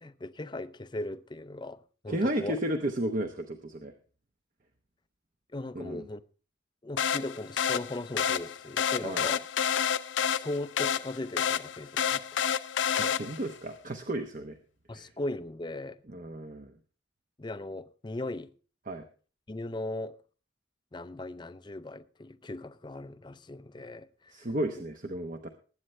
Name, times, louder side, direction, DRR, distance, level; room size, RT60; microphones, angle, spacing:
voice 1, 0.0-2.6 5.5-6.2 6.8-9.4 10.3-12.2 14.9-16.0 17.4-18.5 19.5-20.2 20.9-24.5, left 2 dB, 25° left, 0.6 m, -38 dB
voice 2, 2.1-3.9 5.7-6.0 9.0-9.3 13.0-14.6 14.9-15.1 16.1-16.7 18.9-19.0 24.3-25.5, right 1 dB, 45° right, 0.9 m, -33 dB
sound 1, 7.0-13.6, left 8 dB, 80° left, 0.6 m, -29 dB
20.5 x 8.9 x 3.2 m
head